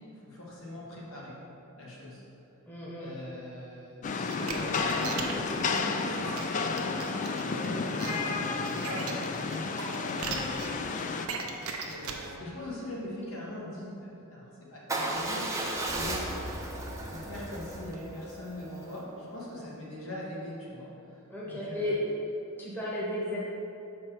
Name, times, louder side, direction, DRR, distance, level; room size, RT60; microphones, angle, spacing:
voice 1, 0.2-1.3 1.8-2.2 3.0-6.5 7.0-10.8 11.1-15.5 15.9-16.2 17.0-22.0, left 1 dB, 70° left, -5 dB, 1.5 m, -41 dB
voice 2, 2.7-3.1 21.3-21.9 22.6-23.4, left 1 dB, 10° left, -7 dB, 1.1 m, -34 dB
Rain, 4.0-11.3, left 4 dB, 35° left, 0.3 m, -31 dB
sound 1, 4.2-12.4, right 4 dB, 85° right, 0.6 m, -40 dB
Motorcycle / Engine starting / Idling, 14.9-19.0, right 2 dB, 15° right, 0.6 m, -35 dB
6.3 x 4.3 x 4.7 m, 2.8 s
head